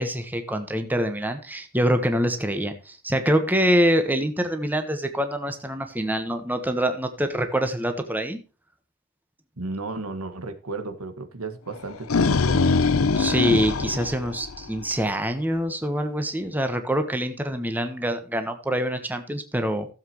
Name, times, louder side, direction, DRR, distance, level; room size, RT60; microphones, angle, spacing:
voice 1, 0.0-8.4 13.2-19.9, equal, 10° right, 1.2 m, -25 dB
voice 2, 9.6-12.8, right 3 dB, 90° right, 1.6 m, -34 dB
sound 1, 11.8-15.0, left 4 dB, 70° left, 0.7 m, -22 dB
16.0 x 7.5 x 3.0 m
head